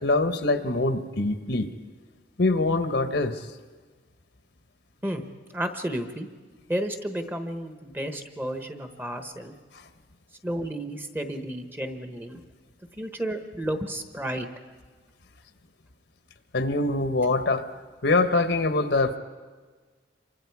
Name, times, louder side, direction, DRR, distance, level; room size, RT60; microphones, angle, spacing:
voice 1, 0.0-1.7 2.4-3.5 16.5-17.6 18.0-19.2, left 2 dB, 60° left, 9 dB, 1.1 m, -24 dB
voice 2, 5.5-6.3 6.7-9.5 10.4-12.4 13.0-14.5, right 1 dB, 10° right, 7 dB, 1.1 m, -32 dB
27.0 x 24.5 x 4.8 m, 1.4 s
head